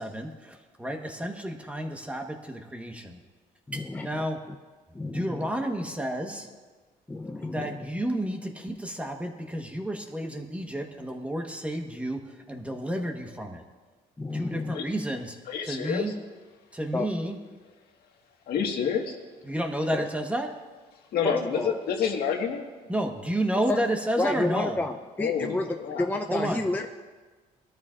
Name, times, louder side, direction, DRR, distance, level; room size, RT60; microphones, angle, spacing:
voice 1, 0.0-3.2 3.7-4.5 5.0-6.5 7.4-13.6 14.3-15.4 15.6-16.1 16.7-17.4 19.4-20.6 22.9-24.8 26.3-26.7, right 1 dB, 10° right, 3 dB, 1.2 m, -31 dB
voice 2, 3.7-4.6 4.9-5.5 7.1-7.8 14.2-14.7 16.9-17.1 19.9-20.1 21.2-21.8 23.7-23.8 24.2-26.9, left 2 dB, 10° left, 3 dB, 0.6 m, -30 dB
voice 3, 15.5-16.0 18.5-19.1 21.1-22.6 25.2-26.1, left 7 dB, 65° left, 2 dB, 1.7 m, -28 dB
20.5 x 13.0 x 2.5 m, 1.3 s
cardioid pair, 110°, 17 cm